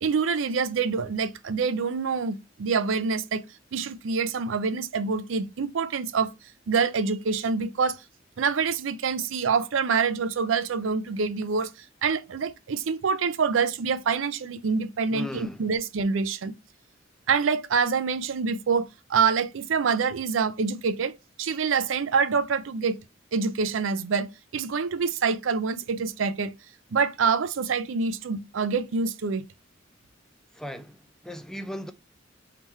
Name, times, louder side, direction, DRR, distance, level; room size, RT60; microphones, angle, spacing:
voice 1, 0.0-3.4 3.7-6.3 6.7-8.0 8.4-11.7 12.0-16.5 17.3-23.0 23.3-26.5 26.9-29.4, right 5 dB, 90° right, 0.5 m, -26 dB
voice 2, 15.1-15.6 30.5-31.0 31.2-31.9, left 1 dB, 5° left, 0.4 m, -36 dB
3.7 x 2.9 x 4.3 m
head